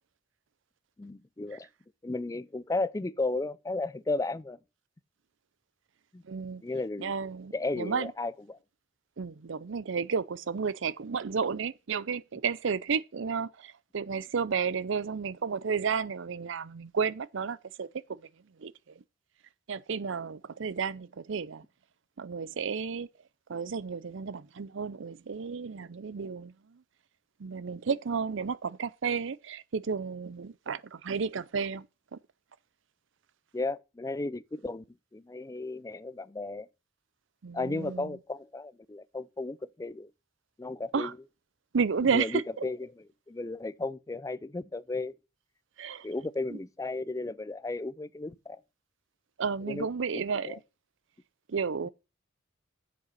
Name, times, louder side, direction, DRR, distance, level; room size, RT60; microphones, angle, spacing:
voice 1, 1.0-1.7 2.0-4.6 6.1-6.2 6.6-7.1 7.5-8.6 33.5-34.8 35.1-36.7 37.5-40.1 40.6-41.2 42.1-45.1 46.0-48.6 49.6-49.9 50.1-50.6, left 2 dB, 15° left, 0.4 m, -34 dB
voice 2, 6.2-6.6 7.0-8.1 9.2-17.9 18.6-18.7 19.7-21.6 22.2-23.1 23.5-26.5 27.4-31.9 32.1-32.2 37.4-38.1 40.9-41.1 41.7-42.4 45.8-46.1 46.5-46.6 49.4-50.6 51.5-51.9, right 5 dB, 65° right, 0.5 m, -32 dB
7.6 x 6.7 x 6.4 m
head